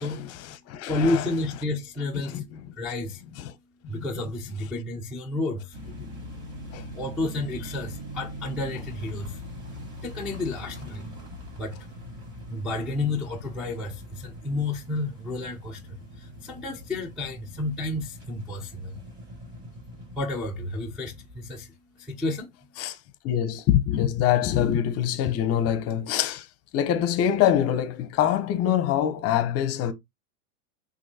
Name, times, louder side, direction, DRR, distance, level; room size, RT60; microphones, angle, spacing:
voice 1, 0.0-1.3 2.3-2.6 3.4-3.5 3.9-4.1 6.7-6.8 22.8-23.0 23.2-26.5 26.7-29.9, left 10 dB, 35° left, 0.7 m, -25 dB
voice 2, 0.9-2.4 2.8-3.2 3.9-5.8 6.9-9.4 10.0-11.1 11.6-11.8 12.5-19.0 20.2-21.7 22.0-22.5, left 2 dB, ahead, 0.4 m, -31 dB
sound 1, 5.7-21.6, equal, 40° right, 2.7 m, -42 dB
6.2 x 2.6 x 2.7 m
supercardioid pair, 135°, 44 cm